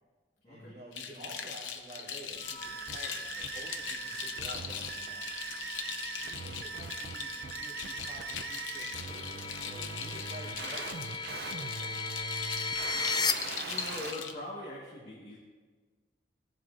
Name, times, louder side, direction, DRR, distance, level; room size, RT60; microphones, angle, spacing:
voice 1, 0.5-5.2 6.2-11.9, equal, 35° right, -9 dB, 3.3 m, -50 dB
sound 1, 0.9-14.3, left 7 dB, 85° left, 0.8 m, -41 dB
sound 2, 2.4-13.3, left 4 dB, 25° left, 0.4 m, -39 dB
sound 3, 2.6-14.1, right 5 dB, 55° right, 0.5 m, -41 dB
voice 2, 13.7-15.4, left 1 dB, 40° left, -7 dB, 1.5 m, -42 dB
16.5 x 7.8 x 2.5 m, 1.5 s
head